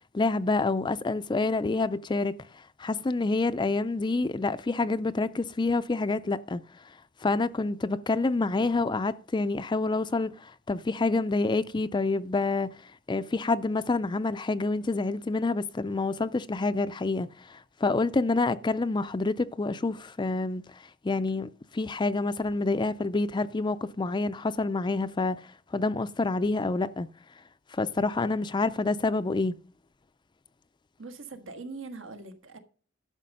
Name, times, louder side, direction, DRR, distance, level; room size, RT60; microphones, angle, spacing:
voice 1, 0.0-6.6 7.2-12.7 13.1-20.6 21.0-25.4 25.7-27.1 27.7-29.5, left 3 dB, 25° left, 0.4 m, -27 dB
voice 2, 31.0-32.6, right 3 dB, 70° right, 1.5 m, -42 dB
12.0 x 6.4 x 5.4 m
head